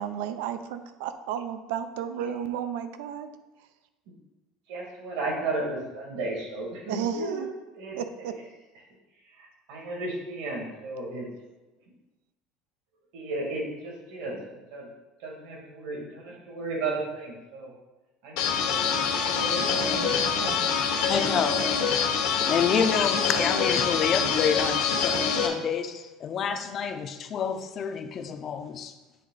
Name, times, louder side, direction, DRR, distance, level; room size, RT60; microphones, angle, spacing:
voice 1, 0.0-3.3 6.9-7.5 8.0-8.3 19.7-20.7, right 9 dB, 90° right, 10 dB, 0.5 m, -33 dB
voice 2, 4.7-7.5 7.7-8.4 9.2-11.3 11.9-12.0 13.1-14.9 15.2-17.7 18.2-20.1 20.9-21.3 22.7-23.0, right 2 dB, 70° right, -2 dB, 2.2 m, -35 dB
sound 1, 18.4-25.5, left 6 dB, 70° left, 1.1 m, -25 dB
voice 3, 21.1-21.8 22.5-28.9, left 7 dB, 30° left, 7 dB, 0.5 m, -28 dB
9.2 x 3.6 x 3.9 m, 1.1 s
cardioid pair, 170°, 0 cm